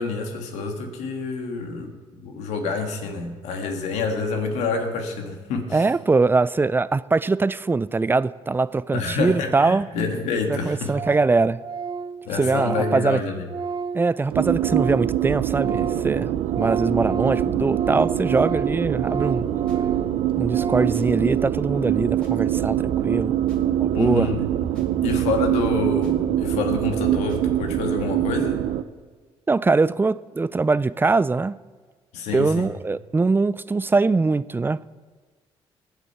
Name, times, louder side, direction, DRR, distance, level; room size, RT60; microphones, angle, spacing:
voice 1, 0.0-5.9 8.9-11.0 12.3-13.4 23.9-24.4 25.0-28.7 32.1-32.7, left 4 dB, 80° left, 2.0 m, -28 dB
voice 2, 5.7-9.9 10.5-11.6 12.4-13.2 13.9-19.4 20.4-23.3 23.8-24.3 29.5-31.6 32.3-34.9, right 3 dB, 20° right, 0.4 m, -22 dB
Organ, 9.9-10.0 10.2-10.3 10.5-10.6 10.9-11.3 11.6-15.2 15.4-21.1, right 5 dB, 50° right, 1.0 m, -31 dB
sound 1, 14.3-28.8, right 12 dB, 75° right, 0.6 m, -24 dB
sound 2, 19.3-28.0, left 2 dB, 10° left, 3.1 m, -43 dB
20.5 x 8.2 x 4.4 m
supercardioid pair, 75°, 11 cm